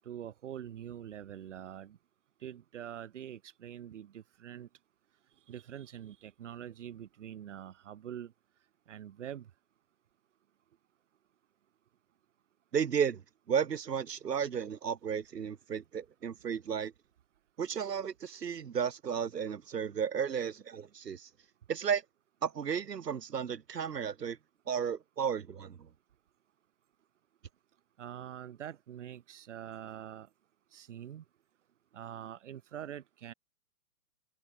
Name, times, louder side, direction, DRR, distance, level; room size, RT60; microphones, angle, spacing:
voice 1, 0.0-2.0 2.4-4.7 5.5-8.3 8.9-9.5 28.0-30.3 30.7-31.2 31.9-33.3, right 10 dB, 50° right, 3.0 m, -44 dB
voice 2, 12.7-13.2 13.5-16.9 17.6-21.3 21.7-22.0 22.4-24.4 24.7-25.9, right 7 dB, 80° right, 3.2 m, -33 dB
hypercardioid pair, 170°, 48 cm